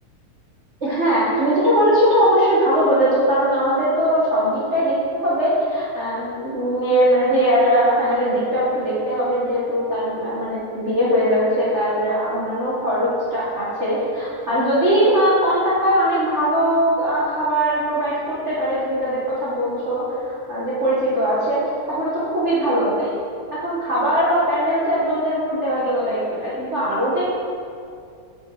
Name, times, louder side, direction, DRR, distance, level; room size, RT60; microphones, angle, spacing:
voice 1, 0.8-4.9 5.2-21.6 21.9-23.1 23.5-27.3, equal, 55° right, -9 dB, 0.7 m, -20 dB
8.5 x 6.3 x 3.9 m, 2.4 s
omnidirectional pair, 3.7 m